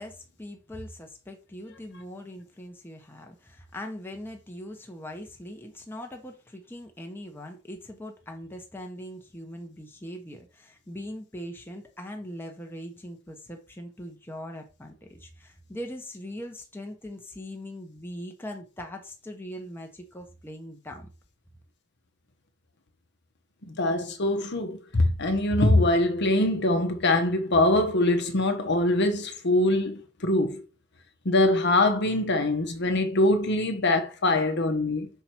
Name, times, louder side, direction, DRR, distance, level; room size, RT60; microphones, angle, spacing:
voice 1, 0.0-21.1, equal, 10° left, 1.0 m, -41 dB
voice 2, 23.6-30.6 31.2-35.1, left 1 dB, 50° left, 1.0 m, -23 dB
5.7 x 4.7 x 4.5 m
head